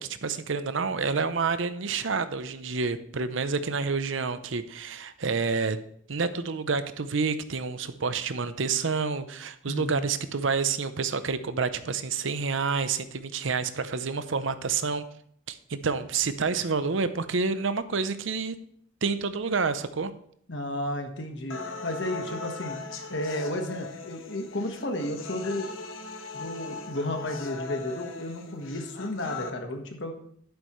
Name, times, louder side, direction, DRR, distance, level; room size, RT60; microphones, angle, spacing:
voice 1, 0.0-5.8 6.1-15.0 15.5-18.5 19.0-20.1, right 5 dB, 75° right, 12 dB, 0.7 m, -28 dB
voice 2, 9.7-10.0 20.5-22.8 23.1-25.7 26.3-30.1, left 1 dB, 60° left, 4 dB, 1.4 m, -33 dB
sound 1, 21.5-29.5, left 3 dB, 85° left, 1.2 m, -39 dB
11.5 x 9.7 x 3.2 m, 0.65 s
head